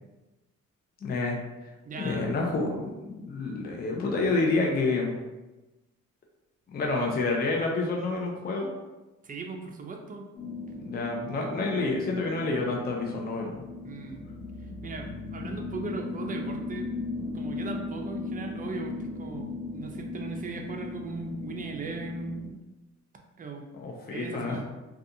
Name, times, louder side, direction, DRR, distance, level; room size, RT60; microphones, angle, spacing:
voice 1, 1.0-1.4 2.0-5.1 6.7-8.7 10.8-13.6 23.7-24.6, left 3 dB, 30° left, 0 dB, 0.5 m, -28 dB
voice 2, 1.9-2.4 9.2-10.3 13.8-14.3 14.8-16.9 17.3-22.6 23.4-23.6 24.1-24.6, right 4 dB, 30° right, 2 dB, 0.4 m, -38 dB
sound 1, 10.3-22.5, left 3 dB, 85° left, 0.8 m, -37 dB
2.4 x 2.3 x 2.6 m, 1.1 s
cardioid pair, 90°, 30 cm